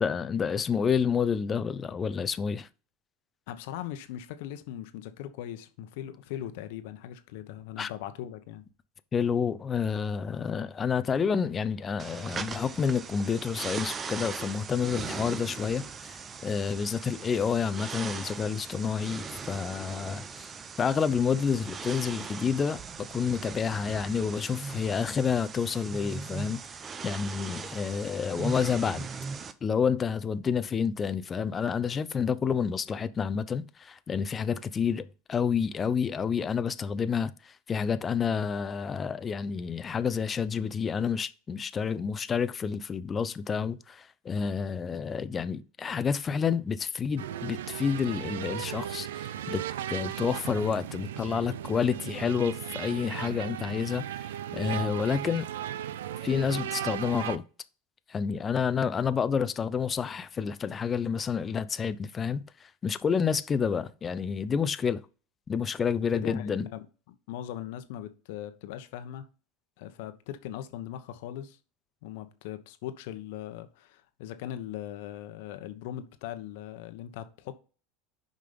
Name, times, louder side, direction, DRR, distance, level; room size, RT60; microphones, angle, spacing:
voice 1, 0.0-2.7 7.8-7.9 9.1-20.5 20.8-26.6 27.0-29.1 29.6-49.6 49.9-54.3 54.5-55.5 56.2-57.4 58.1-65.0 65.5-66.7, left 6 dB, 25° left, 0.6 m, -29 dB
voice 2, 3.5-8.6 66.1-69.3 69.8-71.6 72.0-77.5, left 11 dB, 70° left, 1.1 m, -40 dB
sound 1, 12.0-29.5, right 5 dB, 30° right, 0.8 m, -39 dB
sound 2, 47.2-57.4, right 11 dB, 80° right, 0.5 m, -36 dB
6.6 x 5.3 x 5.2 m
hypercardioid pair, 100°, 0 cm